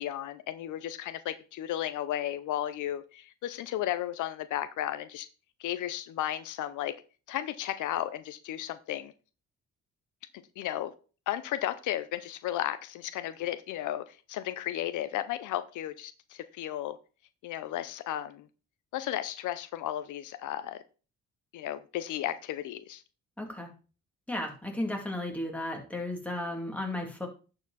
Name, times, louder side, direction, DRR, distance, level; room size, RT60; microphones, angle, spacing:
voice 1, 0.0-5.3 5.6-6.9 7.3-9.1 10.6-10.9 11.3-17.0 17.4-18.5 18.9-20.8 21.5-23.0, left 12 dB, 80° left, 0.7 m, -34 dB
voice 2, 23.4-23.7 24.3-27.3, left 1 dB, 5° left, 2.7 m, -34 dB
11.0 x 4.9 x 4.1 m
cardioid pair, 90°, 30 cm